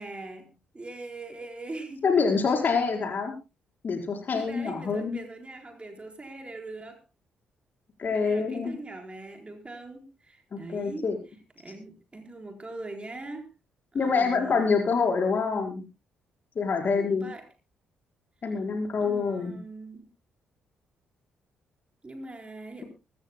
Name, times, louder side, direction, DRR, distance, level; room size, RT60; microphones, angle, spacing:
voice 1, 0.0-2.1 4.3-7.0 8.1-11.0 11.6-13.5 13.9-14.9 16.8-17.5 19.0-20.1 22.0-22.8, right 2 dB, 25° right, 4 dB, 4.3 m, -41 dB
voice 2, 2.0-3.3 3.8-5.2 8.0-8.7 10.5-11.2 13.9-15.8 16.5-17.3 18.4-19.6, left 5 dB, 45° left, 2 dB, 4.9 m, -26 dB
24.0 x 14.0 x 2.2 m, 0.27 s
figure-of-eight pair, 40°, 4 cm